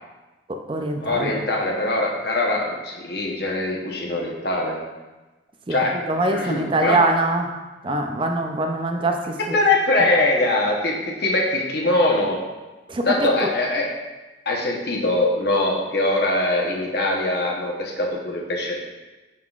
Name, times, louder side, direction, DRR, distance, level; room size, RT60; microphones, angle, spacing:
voice 1, 0.5-1.4 5.7-7.5 7.8-9.4 12.9-13.3, right 2 dB, 25° right, 3 dB, 0.4 m, -23 dB
voice 2, 1.0-4.8 5.7-5.9 6.3-7.0 9.5-12.4 13.0-13.9 14.5-18.8, left 2 dB, 55° left, -1 dB, 1.0 m, -22 dB
10.5 x 3.7 x 2.4 m, 1.1 s
head